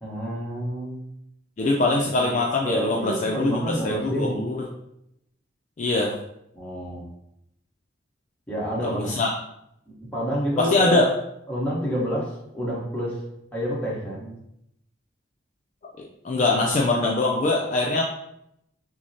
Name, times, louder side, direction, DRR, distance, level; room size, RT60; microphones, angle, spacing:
voice 1, 0.0-1.0 2.1-2.4 2.6-4.4 6.5-7.0 8.5-9.1 9.9-11.1 11.5-13.2 13.5-14.4 16.6-16.7, equal, 10° left, -6 dB, 1.0 m, -29 dB
voice 2, 1.6-4.7 5.8-6.2 8.8-9.3 10.6-11.1 16.2-18.0, left 2 dB, 40° left, -1 dB, 0.3 m, -23 dB
5.8 x 2.1 x 2.7 m, 0.79 s
head